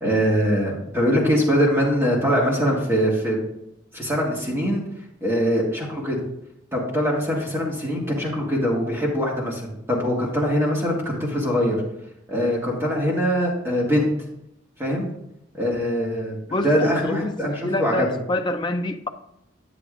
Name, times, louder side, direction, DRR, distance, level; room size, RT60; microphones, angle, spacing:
voice 1, 0.0-3.4 3.9-4.8 5.2-6.2 6.7-11.8 12.3-14.1 14.8-15.1 15.6-16.4 16.6-18.1, equal, 15° right, -4 dB, 1.6 m, -22 dB
voice 2, 16.5-19.1, left 1 dB, 25° left, 5 dB, 0.4 m, -27 dB
9.7 x 8.3 x 2.5 m, 0.80 s
head